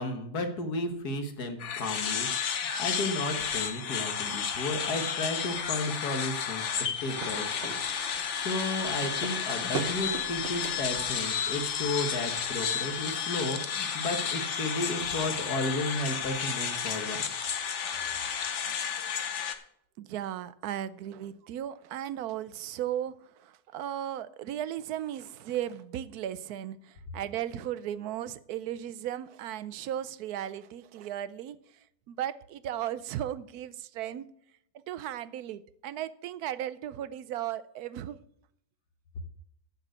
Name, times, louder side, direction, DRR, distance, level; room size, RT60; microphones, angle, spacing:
voice 1, 0.0-7.7 8.0-17.2, left 2 dB, 85° left, 6 dB, 1.9 m, -33 dB
sound 1, 1.6-19.6, left 7 dB, 55° left, 1.1 m, -32 dB
sound 2, 7.1-13.0, right 6 dB, 50° right, 0.9 m, -42 dB
voice 2, 20.0-34.3 34.9-38.2, right 11 dB, 80° right, 15 dB, 1.1 m, -36 dB
7.5 x 7.5 x 7.9 m, 0.71 s
omnidirectional pair, 1.6 m